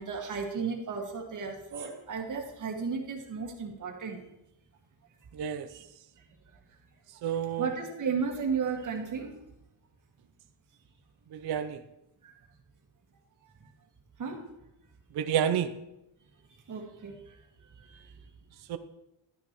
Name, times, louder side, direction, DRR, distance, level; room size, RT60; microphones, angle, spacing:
voice 1, 0.0-4.2 7.6-9.3 14.2-14.4 16.7-17.1, right 5 dB, 45° right, 2 dB, 1.9 m, -33 dB
voice 2, 5.3-5.7 7.2-7.7 11.3-11.8 15.1-15.7 18.7-18.8, right 9 dB, 60° right, 9 dB, 0.7 m, -29 dB
12.0 x 9.8 x 3.0 m, 0.87 s
cardioid pair, 140°, 43 cm